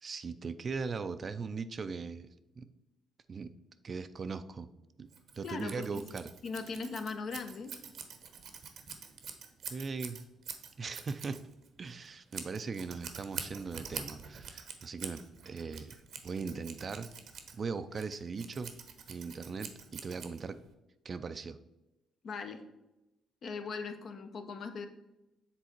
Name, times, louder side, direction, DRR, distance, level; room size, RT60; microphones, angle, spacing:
voice 1, 0.0-2.3 2.6-2.7 3.3-3.5 3.8-4.7 5.0-5.1 5.3-6.3 9.7-10.2 10.8-11.4 11.8-17.1 17.5-18.7 19.1-20.6 21.0-21.6, right 5 dB, 40° right, 12 dB, 0.4 m, -39 dB
Scissors, 5.1-20.7, right 6 dB, 70° right, 0.9 m, -46 dB
voice 2, 5.4-6.0 6.4-7.7 22.2-22.6 23.4-24.9, left 4 dB, 55° left, 7 dB, 0.8 m, -39 dB
7.0 x 3.8 x 4.5 m, 0.97 s
cardioid pair, 90°, 0 cm